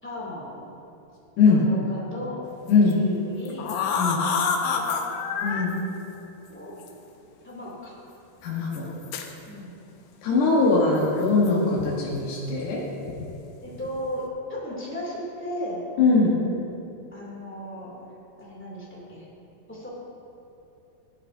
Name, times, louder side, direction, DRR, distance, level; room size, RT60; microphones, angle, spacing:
voice 1, 0.0-0.5 1.5-2.4 2.8-3.6 4.7-5.0 6.5-6.7 7.4-7.9 9.4-9.7 10.6-10.7 13.6-14.2 14.5-15.8 17.1-17.9 18.4-19.3 19.7-19.9, equal, 5° left, -7 dB, 1.7 m, -36 dB
sound 1, 2.7-2.9 3.5-5.6 6.8-6.9 7.7-7.8 8.7-9.3 11.1-11.9 12.1-12.5 13.1-13.3 13.7-14.1, left 5 dB, 80° left, 1.9 m, -28 dB
voice 2, 5.4-5.7 8.4-8.9 10.2-12.8 16.0-16.4, left 4 dB, 60° left, -6 dB, 2.4 m, -21 dB
14.5 x 11.0 x 2.7 m, 2.9 s
omnidirectional pair, 4.7 m